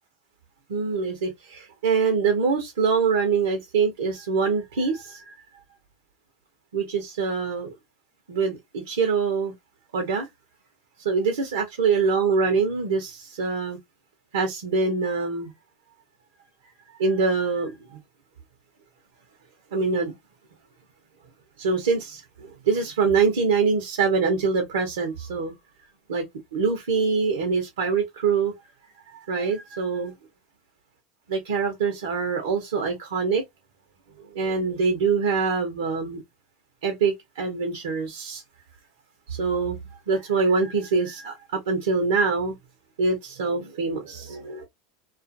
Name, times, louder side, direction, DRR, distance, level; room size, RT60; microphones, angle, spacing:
voice 1, 0.7-5.3 6.7-7.7 8.3-9.5 9.9-10.3 11.0-13.8 14.3-15.5 16.9-17.7 19.7-20.1 21.6-25.5 26.1-26.2 26.5-28.5 29.3-30.1 31.3-33.4 34.3-36.2 36.8-38.4 39.3-39.8 40.1-42.5 43.0-44.7, right 5 dB, 85° right, 0.8 m, -24 dB
2.5 x 2.4 x 2.4 m
hypercardioid pair, 95°, 0 cm